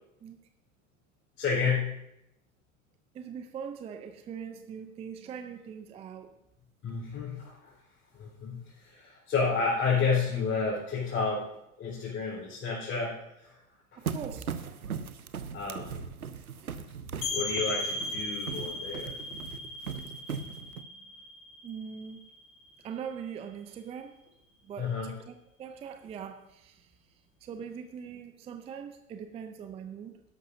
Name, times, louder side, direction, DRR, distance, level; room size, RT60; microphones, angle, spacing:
voice 1, 1.4-1.9 6.8-7.7 8.1-11.5 11.8-13.6 13.9-14.0 15.5-16.1 17.3-19.1 24.8-25.1, left 5 dB, 30° left, -8 dB, 4.0 m, -31 dB
voice 2, 3.1-6.3 14.0-14.5 17.2-17.3 21.0-21.1 21.6-22.2 22.8-24.2 24.6-26.9 27.4-30.1, right 7 dB, 15° right, 7 dB, 0.5 m, -41 dB
sound 1, 14.0-20.8, right 6 dB, 85° right, 0.7 m, -39 dB
sound 2, 17.2-22.7, left 2 dB, 60° left, 3.4 m, -37 dB
12.5 x 11.5 x 2.7 m, 0.84 s
figure-of-eight pair, 90°, 42 cm